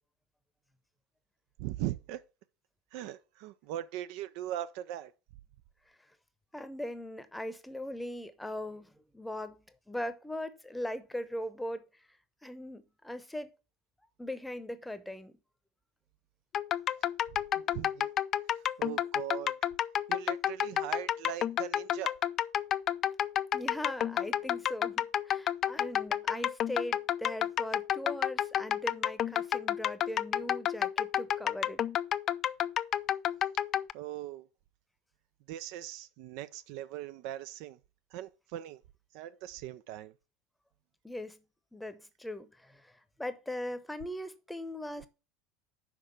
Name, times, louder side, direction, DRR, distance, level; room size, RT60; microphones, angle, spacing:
voice 1, 1.6-2.2 2.9-5.1 17.5-18.1 18.5-19.5 20.1-22.1 33.9-34.5 35.5-37.8 38.1-38.8 39.1-40.1, right 13 dB, 55° right, 0.4 m, -40 dB
voice 2, 6.5-11.9 12.4-13.5 14.2-15.3 23.5-31.8 41.0-41.4 41.7-45.1, left 1 dB, 5° left, 0.9 m, -40 dB
sound 1, 16.5-33.9, left 10 dB, 40° left, 0.3 m, -30 dB
5.9 x 5.3 x 6.6 m
figure-of-eight pair, 70°, 0 cm